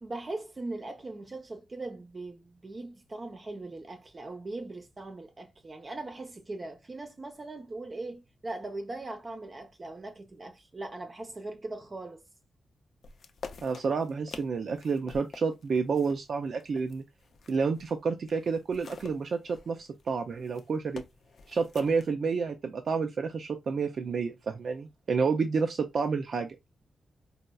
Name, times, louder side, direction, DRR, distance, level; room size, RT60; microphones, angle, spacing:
voice 1, 0.0-12.2, right 2 dB, 30° right, 0.7 m, -40 dB
sound 1, 13.0-18.0 18.3-22.1, left 5 dB, 65° left, 0.4 m, -47 dB
voice 2, 13.6-17.0 17.5-21.0 21.5-26.6, right 5 dB, 65° right, 0.4 m, -30 dB
4.1 x 2.4 x 2.3 m
wide cardioid pair, 105°, 0 cm